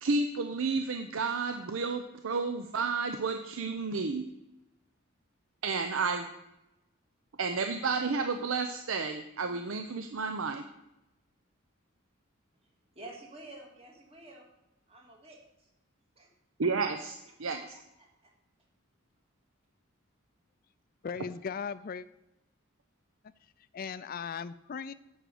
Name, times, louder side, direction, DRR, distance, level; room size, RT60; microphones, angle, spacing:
voice 1, 0.0-4.3 5.6-6.3 7.4-10.6 16.6-17.6, right 4 dB, 80° right, 7 dB, 0.7 m, -31 dB
voice 2, 12.9-14.5 14.9-15.7 16.2-16.3 17.5-17.6 18.0-18.3, right 2 dB, 30° right, -1 dB, 2.5 m, -50 dB
voice 3, 21.0-22.1 23.7-24.9, left 6 dB, 45° left, 13 dB, 0.4 m, -37 dB
7.9 x 6.5 x 7.8 m, 0.91 s
head